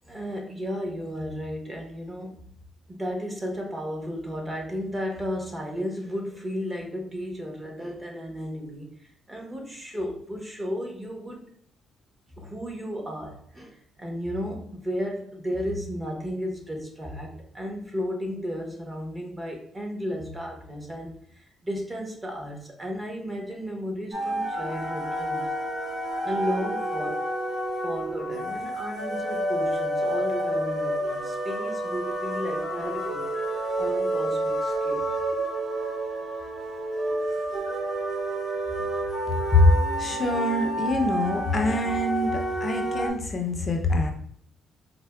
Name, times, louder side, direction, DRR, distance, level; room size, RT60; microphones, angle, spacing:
voice 1, 0.0-2.5 2.9-11.5 12.4-25.5 26.2-27.3 27.8-33.3 33.8-35.1 38.7-38.9, equal, 20° right, 1 dB, 0.9 m, -34 dB
sound 1, 24.1-43.1, right 1 dB, 50° right, 1.5 m, -29 dB
voice 2, 40.0-44.1, left 2 dB, 40° left, 3 dB, 0.4 m, -24 dB
4.3 x 2.0 x 2.2 m, 0.62 s
cardioid pair, 90°, 0 cm